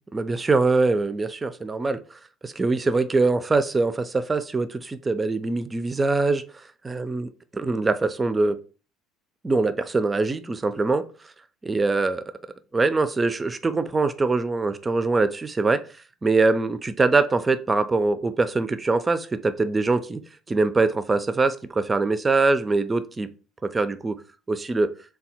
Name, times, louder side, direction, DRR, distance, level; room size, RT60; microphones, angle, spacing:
voice 1, 0.1-2.0 2.4-6.4 6.8-8.6 9.4-11.0 11.6-12.2 12.7-15.8 16.2-20.2 20.5-23.3 23.6-24.2 24.5-24.9, right 3 dB, 25° right, 11 dB, 0.5 m, -23 dB
3.4 x 2.3 x 4.2 m, 0.37 s
hypercardioid pair, 60°, 0 cm